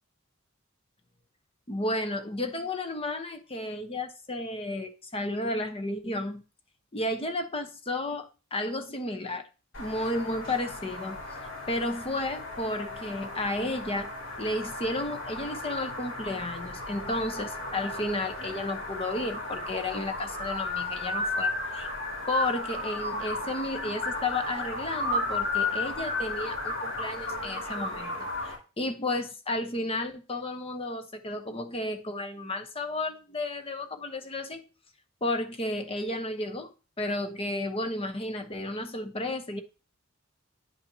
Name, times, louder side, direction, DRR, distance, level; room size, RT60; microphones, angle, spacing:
voice 1, 1.7-6.4 6.9-9.5 9.8-11.2 11.7-14.1 14.4-21.9 22.3-34.6 35.2-39.6, left 2 dB, 25° left, 0.9 m, -32 dB
sound 1, 9.7-28.5, left 2 dB, 65° left, 4.4 m, -34 dB
10.0 x 5.7 x 2.8 m
head